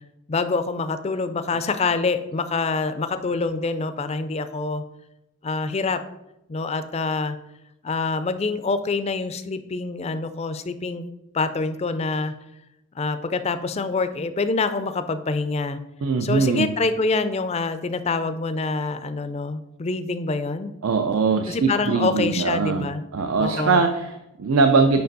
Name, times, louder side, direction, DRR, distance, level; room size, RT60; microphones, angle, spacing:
voice 1, 0.3-4.8 5.4-6.0 6.5-7.4 7.8-11.1 11.3-12.3 12.9-15.8 16.2-20.7 21.5-23.0 23.4-23.8, left 3 dB, 30° left, 11 dB, 0.4 m, -26 dB
voice 2, 16.0-16.7 20.8-22.9 23.1-25.0, right 4 dB, 70° right, 6 dB, 0.5 m, -21 dB
6.7 x 5.2 x 4.0 m, 0.90 s
head